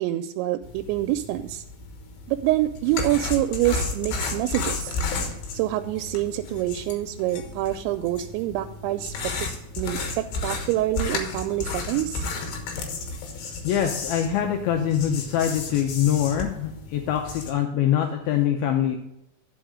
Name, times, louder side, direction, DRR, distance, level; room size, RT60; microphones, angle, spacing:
voice 1, 0.0-1.6 2.3-5.0 5.5-9.1 9.8-12.2, right 14 dB, 85° right, 7 dB, 2.8 m, -26 dB
sound 1, 0.6-17.5, left 3 dB, 70° left, 3.3 m, -33 dB
voice 2, 13.6-19.0, left 10 dB, 85° left, 3 dB, 2.1 m, -24 dB
10.0 x 5.4 x 4.9 m, 0.80 s
omnidirectional pair, 5.3 m